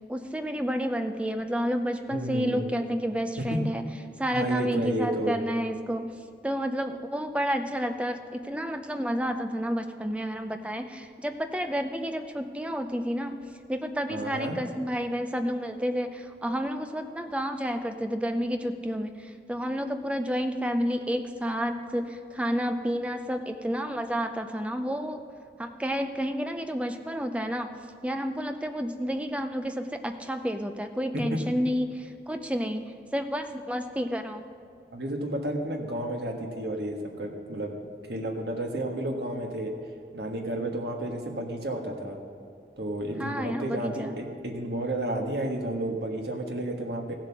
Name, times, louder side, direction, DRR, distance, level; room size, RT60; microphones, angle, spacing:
voice 1, 0.1-3.9 4.2-13.4 13.7-25.2 25.6-27.7 28.0-34.5 43.2-44.2, equal, 5° right, 7 dB, 0.5 m, -30 dB
voice 2, 2.1-2.9 3.5-3.6 4.3-5.4 14.1-14.5 31.1-31.4 34.9-37.7 38.1-39.7 40.1-42.2 42.8-47.2, right 1 dB, 70° right, 1 dB, 1.5 m, -31 dB
15.5 x 7.6 x 6.1 m, 2.4 s
head